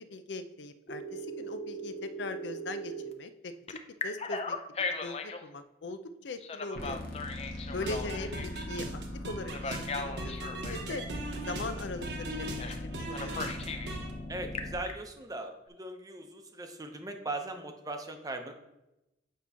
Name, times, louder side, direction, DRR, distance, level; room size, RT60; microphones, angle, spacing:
voice 1, 0.0-3.8 4.0-4.6 5.0-7.0 7.7-11.0 11.5-13.4, left 2 dB, 80° left, 10 dB, 0.5 m, -40 dB
Telephone, 0.9-3.1 3.7-5.4 6.4-8.7 9.5-10.8 12.6-12.8 13.1-13.9 14.3-14.9, left 2 dB, 35° left, 0.5 m, -38 dB
sound 1, 6.7-14.8, left 1 dB, 55° left, 1.1 m, -41 dB
voice 2, 7.7-8.0 14.3-18.5, right 2 dB, 20° right, 5 dB, 0.7 m, -39 dB
sound 2, 7.8-14.1, right 2 dB, 75° right, 1.1 m, -40 dB
8.3 x 3.0 x 5.5 m, 0.91 s
head